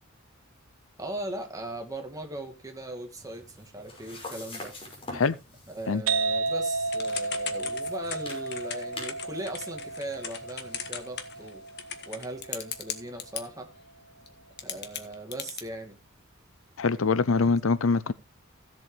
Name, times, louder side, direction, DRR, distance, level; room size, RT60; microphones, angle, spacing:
voice 1, 1.0-4.7 5.7-11.7 12.1-13.7 14.6-16.0 17.3-17.5, right 1 dB, 15° right, 2.3 m, -39 dB
sound 1, 3.2-11.5, left 2 dB, 25° left, 5.8 m, -46 dB
sound 2, 6.1-13.5, right 3 dB, 75° right, 1.0 m, -33 dB
Typing / Telephone, 6.9-13.4 14.3-14.4 14.6-15.6, left 8 dB, 55° left, 1.6 m, -37 dB
voice 2, 16.8-18.1, left 4 dB, 75° left, 0.6 m, -24 dB
16.5 x 7.6 x 3.4 m
head